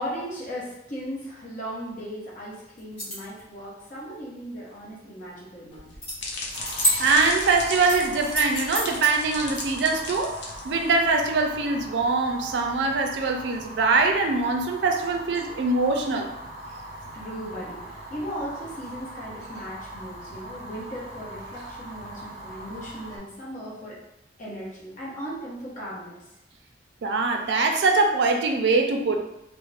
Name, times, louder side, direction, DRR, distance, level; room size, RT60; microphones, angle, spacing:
voice 1, 0.0-5.9 15.3-15.4 17.1-24.0 24.4-26.2, equal, 45° left, -6 dB, 0.8 m, -37 dB
sound 1, 2.8-3.4 6.0-6.1 6.5-7.4 7.8-9.1, right 1 dB, 30° left, 1.4 m, -28 dB
sound 2, 5.7-11.1, left 3 dB, 80° left, 0.6 m, -36 dB
Fire, 6.5-23.2, right 1 dB, 20° right, 1.1 m, -41 dB
voice 2, 7.0-10.4 10.6-16.3 27.0-29.2, right 3 dB, 65° right, 3 dB, 0.4 m, -23 dB
2.4 x 2.0 x 3.2 m, 0.84 s
head